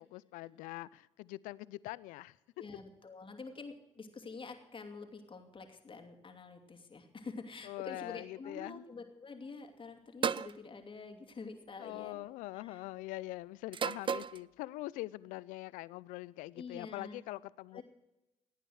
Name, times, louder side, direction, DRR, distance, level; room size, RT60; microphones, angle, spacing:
voice 1, 0.0-2.4 7.6-8.8 11.8-17.8, left 18 dB, 80° left, 21 dB, 0.4 m, -43 dB
voice 2, 2.6-12.2 12.5-12.8 16.5-17.2 17.7-17.8, left 4 dB, 40° left, 5 dB, 2.8 m, -47 dB
sound 1, 10.2-10.6 11.7-12.1 13.7-14.4, right 7 dB, 40° right, 0.5 m, -33 dB
17.0 x 9.1 x 6.3 m, 0.98 s
hypercardioid pair, 55°, 13 cm